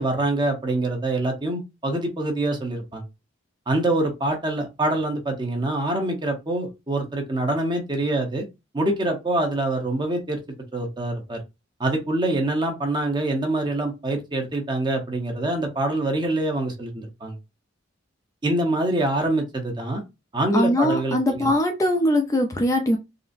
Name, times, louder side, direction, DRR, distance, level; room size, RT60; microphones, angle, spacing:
voice 1, 0.0-3.0 3.7-8.4 8.7-10.4 10.7-11.4 11.8-17.4 18.4-20.0 20.3-21.5, right 2 dB, 25° right, 0.8 m, -25 dB
voice 2, 20.5-23.0, left 1 dB, 15° left, 0.4 m, -21 dB
3.8 x 2.0 x 2.5 m
head